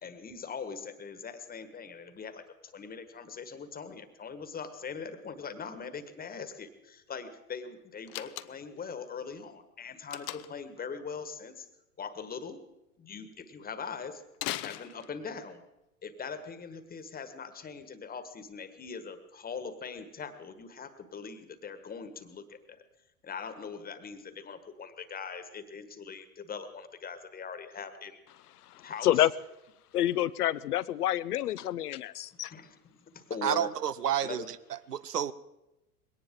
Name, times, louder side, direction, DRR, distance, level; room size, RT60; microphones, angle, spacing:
voice 1, 0.0-11.7 12.0-12.6 13.0-14.2 14.6-15.6 16.0-22.8 23.2-28.2 28.8-29.3 32.5-33.7 34.2-34.5, left 5 dB, 20° left, 11 dB, 1.5 m, -41 dB
Slam, 8.1-8.8 10.1-10.7 14.3-15.4, left 16 dB, 35° left, 0.6 m, -38 dB
voice 2, 28.7-29.3 29.9-32.5, left 13 dB, 75° left, 18 dB, 0.7 m, -28 dB
voice 3, 33.4-35.3, right 9 dB, 90° right, 17 dB, 0.7 m, -30 dB
21.0 x 18.0 x 3.7 m, 0.93 s
figure-of-eight pair, 90°, 46 cm